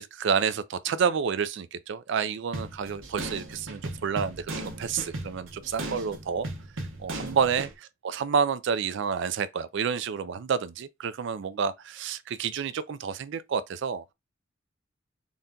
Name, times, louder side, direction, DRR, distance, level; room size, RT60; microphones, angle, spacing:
voice 1, 0.0-6.5 7.0-14.1, right 6 dB, 65° right, 0.4 m, -29 dB
sound 1, 2.5-7.7, right 1 dB, 85° right, 1.0 m, -37 dB
4.0 x 2.2 x 3.7 m
head